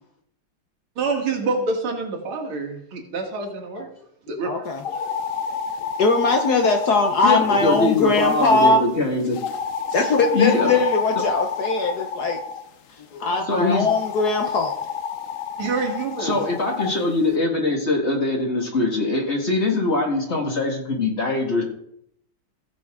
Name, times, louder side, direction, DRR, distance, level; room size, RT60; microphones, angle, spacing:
voice 1, 1.0-3.9 4.3-5.1 5.8-5.9 15.6-16.4, right 3 dB, 80° right, 1 dB, 2.6 m, -27 dB
voice 2, 4.4-4.8 6.0-8.8 9.9-12.4 13.1-14.7, left 3 dB, 60° left, 4 dB, 1.2 m, -20 dB
sound 1, 4.8-8.7 9.3-12.6 13.7-16.9, left 7 dB, 85° left, 0.7 m, -29 dB
voice 3, 7.2-9.4 10.3-10.8 13.5-13.9 16.2-21.6, left 2 dB, 35° left, 1 dB, 1.8 m, -22 dB
15.5 x 6.9 x 3.6 m, 0.70 s
omnidirectional pair, 2.3 m